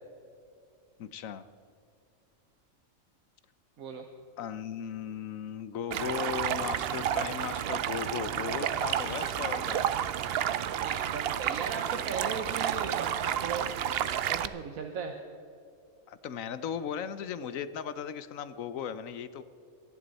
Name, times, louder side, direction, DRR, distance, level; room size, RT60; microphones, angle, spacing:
voice 1, 1.0-1.4 4.4-10.0 16.1-19.4, left 8 dB, 75° left, 14 dB, 1.1 m, -37 dB
Stream, 5.9-14.5, right 10 dB, 60° right, 0.7 m, -31 dB
voice 2, 10.8-13.7 14.3-15.1, right 5 dB, 85° right, 4 dB, 1.4 m, -37 dB
22.5 x 11.0 x 4.1 m, 2.5 s
omnidirectional pair, 1.4 m